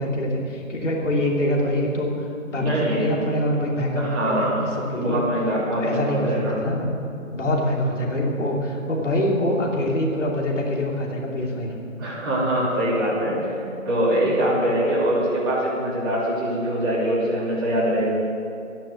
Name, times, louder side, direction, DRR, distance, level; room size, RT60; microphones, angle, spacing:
voice 1, 0.0-4.6 4.9-5.2 5.7-6.9 7.3-11.7, left 1 dB, 60° left, -1 dB, 3.1 m, -24 dB
voice 2, 2.5-3.0 3.9-6.6 12.0-18.1, right 1 dB, 15° right, -8 dB, 3.0 m, -23 dB
12.5 x 10.5 x 8.2 m, 2.5 s
hypercardioid pair, 170°, 41 cm